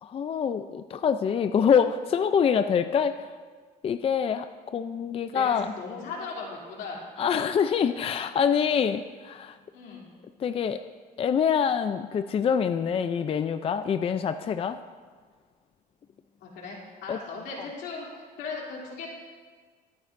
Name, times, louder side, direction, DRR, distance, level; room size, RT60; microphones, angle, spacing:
voice 1, 0.0-3.3 3.8-5.7 7.2-9.6 10.4-10.8 11.2-14.8 17.1-17.2, left 7 dB, 35° left, 9 dB, 0.4 m, -25 dB
voice 2, 5.3-7.0 9.7-10.1 16.4-19.1, left 4 dB, 80° left, -3 dB, 3.1 m, -38 dB
22.5 x 9.6 x 2.6 m, 1.5 s
cardioid pair, 110°, 17 cm